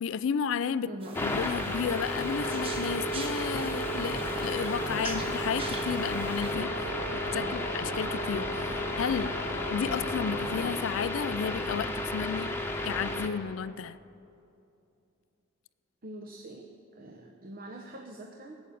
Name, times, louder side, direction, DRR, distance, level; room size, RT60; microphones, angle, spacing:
voice 1, 0.0-0.9 1.2-6.7 7.3-9.3 9.7-12.5 12.8-14.0, left 7 dB, 65° left, 16 dB, 0.3 m, -32 dB
voice 2, 0.9-1.2 7.3-7.6 9.7-10.0 16.0-16.7 16.9-18.6, right 1 dB, 45° right, 2 dB, 0.8 m, -44 dB
sound 1, 1.0-6.6, right 2 dB, 25° right, 1.3 m, -43 dB
sound 2, 1.1-13.3, left 1 dB, 10° left, 1.0 m, -33 dB
sound 3, 2.1-10.7, right 1 dB, 90° left, 0.9 m, -38 dB
18.5 x 7.2 x 8.4 m, 2.7 s
head